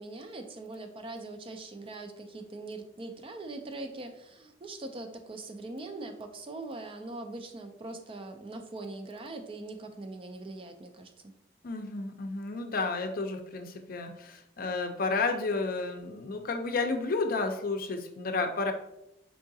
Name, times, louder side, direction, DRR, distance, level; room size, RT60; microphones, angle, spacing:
voice 1, 0.0-11.1, right 2 dB, 30° right, 6 dB, 0.4 m, -42 dB
voice 2, 11.6-18.7, left 3 dB, 55° left, 5 dB, 0.5 m, -31 dB
4.7 x 3.6 x 2.6 m, 0.84 s
head